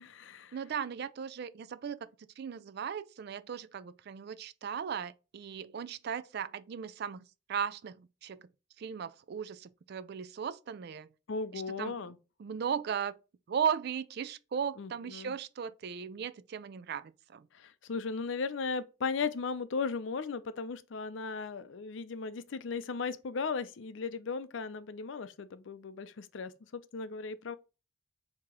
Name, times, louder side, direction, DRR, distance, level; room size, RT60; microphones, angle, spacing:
voice 1, 0.0-0.6 11.3-12.2 14.8-15.3 17.5-27.6, left 4 dB, 65° left, 0.5 m, -37 dB
voice 2, 0.5-2.0 2.4-8.5 8.8-11.1 11.5-12.0 12.4-13.1 13.5-17.5, right 7 dB, 55° right, 0.3 m, -37 dB
4.7 x 2.9 x 3.7 m
head